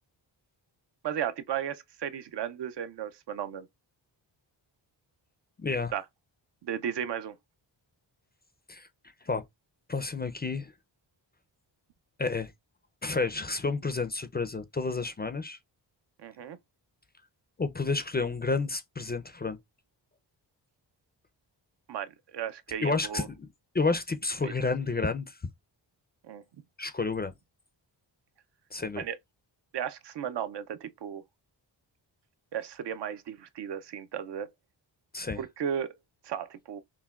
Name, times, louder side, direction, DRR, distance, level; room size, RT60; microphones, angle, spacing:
voice 1, 1.0-3.7 5.9-6.0 6.6-7.4 16.2-16.6 21.9-23.3 24.4-24.5 26.2-26.4 29.0-29.2 29.7-31.2 32.5-34.5 35.3-35.9 36.2-36.8, right 9 dB, 65° right, 0.5 m, -35 dB
voice 2, 5.6-5.9 8.7-8.9 9.3-9.4 9.9-10.7 12.2-12.5 13.0-15.6 17.6-19.6 22.8-23.5 23.7-25.3 26.8-27.3 28.7-29.0 35.1-35.4, left 4 dB, 20° left, 0.4 m, -30 dB
5.7 x 2.2 x 2.3 m
cardioid pair, 75°, 46 cm